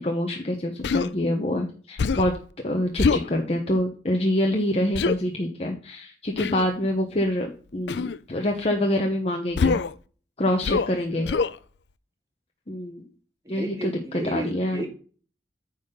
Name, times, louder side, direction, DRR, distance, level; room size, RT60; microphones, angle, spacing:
voice 1, 0.0-2.3 2.6-9.8 10.4-11.3 12.7-13.1 13.5-13.9 14.2-14.9, left 1 dB, 35° left, 3 dB, 1.0 m, -26 dB
Human voice, 0.8-1.1 2.0-2.4 3.0-3.3 4.9-5.2 6.4-6.7 7.9-8.2 9.6-9.9 10.6-10.9 11.3-11.6, left 5 dB, 75° left, 0.4 m, -24 dB
voice 2, 11.1-11.5 13.4-14.9, right 1 dB, 20° right, 0 dB, 2.5 m, -34 dB
9.4 x 4.1 x 6.7 m, 0.41 s
head